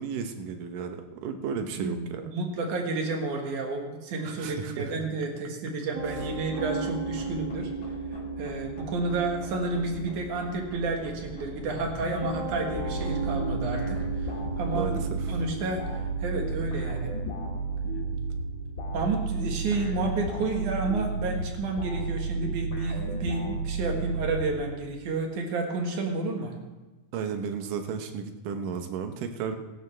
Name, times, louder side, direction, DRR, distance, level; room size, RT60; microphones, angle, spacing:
voice 1, 0.0-2.2 4.2-4.9 6.1-6.2 14.7-15.4 27.1-29.6, right 6 dB, 85° right, 7 dB, 2.6 m, -34 dB
voice 2, 1.8-7.7 8.4-14.3 14.6-15.0 15.3-17.1 18.9-26.5, right 3 dB, 70° right, 2 dB, 2.9 m, -31 dB
Piano, 5.9-23.1, right 3 dB, 40° right, 2.0 m, -38 dB
sound 1, 6.0-15.8, left 2 dB, 50° left, 3.7 m, -46 dB
sound 2, 12.8-25.0, right 3 dB, 30° left, 1.9 m, -32 dB
17.0 x 14.0 x 3.3 m, 1.2 s
omnidirectional pair, 3.7 m